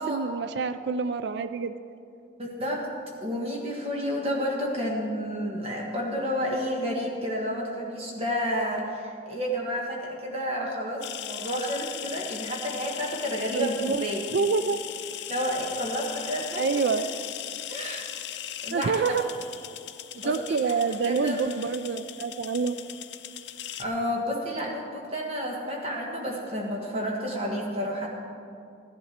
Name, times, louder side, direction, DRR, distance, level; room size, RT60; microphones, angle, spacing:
voice 1, 0.0-1.7 13.5-14.0 14.3-14.8 16.6-17.1 18.7-19.2 20.1-22.8, right 5 dB, 60° right, 11 dB, 0.4 m, -27 dB
voice 2, 2.4-2.9 3.2-14.2 15.3-16.7 17.7-18.0 18.6-19.1 20.2-20.7 21.0-21.4 23.8-28.1, equal, 30° right, -1 dB, 1.4 m, -30 dB
sound 1, 11.0-23.8, left 11 dB, 65° left, 0.6 m, -38 dB
15.5 x 11.0 x 4.3 m, 2.6 s
head